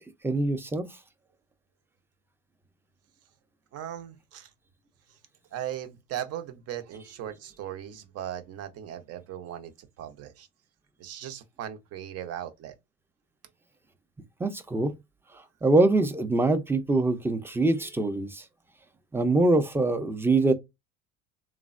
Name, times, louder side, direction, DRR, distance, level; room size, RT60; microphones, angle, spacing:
voice 1, 0.2-0.9 14.4-14.9 15.6-18.4 19.1-20.5, right 2 dB, 10° right, 0.5 m, -24 dB
voice 2, 3.7-4.5 5.5-10.5 11.0-12.7, right 11 dB, 55° right, 0.7 m, -38 dB
3.1 x 2.1 x 2.4 m
supercardioid pair, 95°, 30 cm